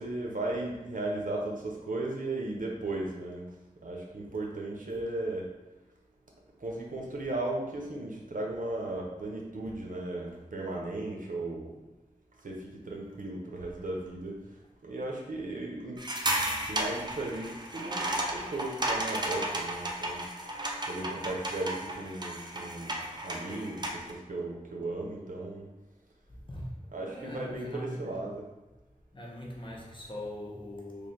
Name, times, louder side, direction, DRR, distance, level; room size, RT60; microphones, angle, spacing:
voice 1, 0.0-3.5 3.8-5.5 6.6-11.7 12.4-14.4 14.8-16.1 16.6-18.0 18.3-20.3 20.9-25.7 26.9-28.4, right 2 dB, 75° right, 0.7 m, -36 dB
sound 1, 16.0-24.1, right 1 dB, 30° right, 0.5 m, -34 dB
voice 2, 27.0-28.2 29.1-31.1, left 1 dB, 40° left, 0.9 m, -41 dB
3.3 x 2.5 x 4.2 m
wide cardioid pair, 65°, 14 cm